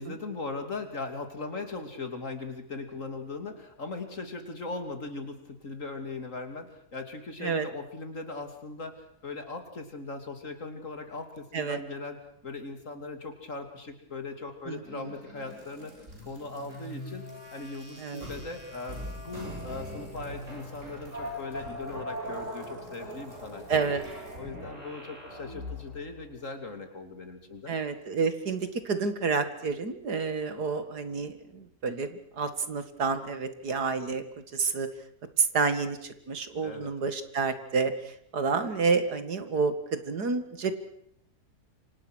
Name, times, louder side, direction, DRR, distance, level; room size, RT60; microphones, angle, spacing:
voice 1, 0.0-15.9 16.2-17.3 17.5-23.6 24.4-27.8 36.6-36.9, left 3 dB, 50° left, 6 dB, 3.2 m, -39 dB
voice 2, 14.7-15.1 18.0-18.3 23.7-24.0 27.7-32.1 32.4-34.2 34.5-34.9 35.4-40.8, right 4 dB, 80° right, 10 dB, 2.5 m, -29 dB
sound 1, 14.8-26.1, equal, 50° right, 8.2 m, -41 dB
28.0 x 25.5 x 6.3 m, 0.71 s
omnidirectional pair, 1.7 m